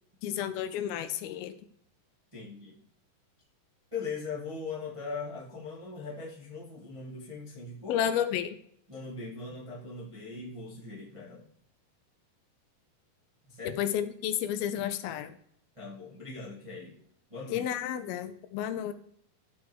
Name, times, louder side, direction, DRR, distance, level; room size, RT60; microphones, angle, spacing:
voice 1, 0.2-1.6 7.9-8.6 13.8-15.4 17.5-18.9, left 10 dB, 80° left, 11 dB, 2.5 m, -31 dB
voice 2, 2.3-2.8 3.9-8.0 8.9-11.5 13.5-13.8 15.7-17.0 17.3-17.7, left 4 dB, 15° right, -5 dB, 1.2 m, -40 dB
13.0 x 4.6 x 4.7 m, 0.65 s
omnidirectional pair, 4.4 m